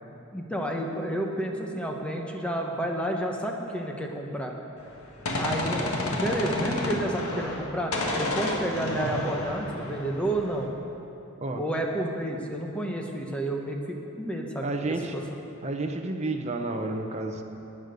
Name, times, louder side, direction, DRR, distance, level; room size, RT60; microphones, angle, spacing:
voice 1, 0.3-4.5 5.3-10.7 11.6-14.7 15.1-15.2, right 1 dB, 5° left, 1 dB, 1.1 m, -30 dB
Gunshot gunfire, 4.8-7.7 7.9-10.6, left 1 dB, 85° left, 1.7 m, -31 dB
voice 2, 14.6-15.2 15.6-17.4, right 2 dB, 30° right, 3 dB, 0.8 m, -30 dB
16.0 x 9.8 x 5.2 m, 2.9 s
head